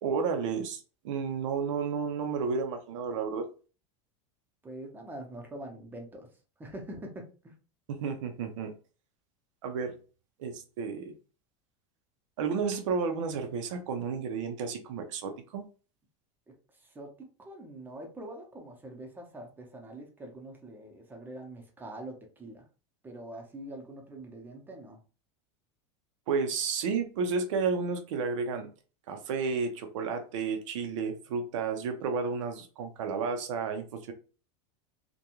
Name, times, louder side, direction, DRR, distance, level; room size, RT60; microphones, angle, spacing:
voice 1, 0.0-3.5 8.0-8.7 9.6-10.0 10.4-11.1 12.4-15.6 26.3-28.7 29.1-34.1, right 5 dB, 85° right, 5 dB, 0.6 m, -32 dB
voice 2, 4.6-6.3 6.6-7.5 16.5-22.7 23.0-25.0, right 1 dB, 10° right, 2 dB, 0.6 m, -44 dB
2.4 x 2.2 x 2.9 m, 0.35 s
supercardioid pair, 135°, 16 cm